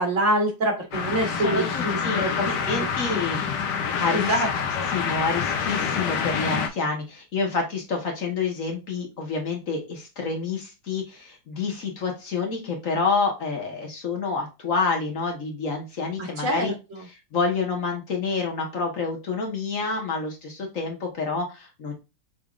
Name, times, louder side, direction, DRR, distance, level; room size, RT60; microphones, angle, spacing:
voice 1, 0.0-3.2 4.1-4.9 16.2-17.0, right 1 dB, 50° right, 3 dB, 1.6 m, -26 dB
sound 1, 0.9-6.7, left 6 dB, 85° left, 1.3 m, -27 dB
voice 2, 1.4-3.4 4.0-4.3 4.9-16.7 17.3-21.9, left 4 dB, 55° left, 1 dB, 1.6 m, -28 dB
6.0 x 3.4 x 2.4 m, 0.27 s
omnidirectional pair, 1.8 m